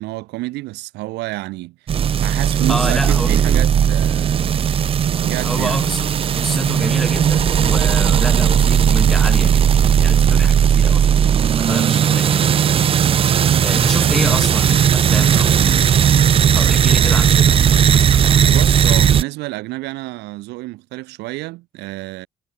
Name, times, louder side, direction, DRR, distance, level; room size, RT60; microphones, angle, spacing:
voice 1, 0.0-4.5 5.2-5.8 13.2-14.4 18.4-22.3, right 20 dB, 90° right, 3.5 m, -30 dB
sound 1, 1.9-19.2, right 8 dB, 35° right, 0.4 m, -16 dB
voice 2, 2.7-3.3 5.4-12.5 13.6-15.9 16.5-18.6, equal, ahead, 3.3 m, -28 dB
cardioid pair, 110°, 17 cm